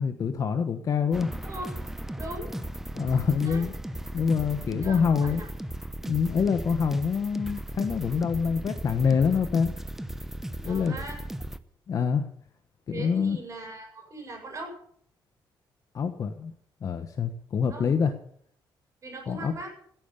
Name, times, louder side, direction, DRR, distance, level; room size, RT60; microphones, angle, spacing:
voice 1, 0.0-1.3 2.9-3.7 4.1-5.4 6.1-9.7 10.6-11.0 11.9-12.2 12.9-13.4 15.9-16.5 16.8-18.1 19.3-19.5, left 6 dB, 45° left, 8 dB, 1.2 m, -25 dB
sound 1, 1.1-11.6, right 1 dB, 5° right, 0.8 m, -36 dB
voice 2, 1.4-1.7 2.2-2.5 3.3-3.6 4.8-5.5 10.7-11.2 12.9-14.8 17.7-17.9 19.0-19.7, right 2 dB, 35° right, 2 dB, 7.9 m, -40 dB
17.0 x 9.4 x 8.2 m, 0.63 s
cardioid pair, 160°, 8 cm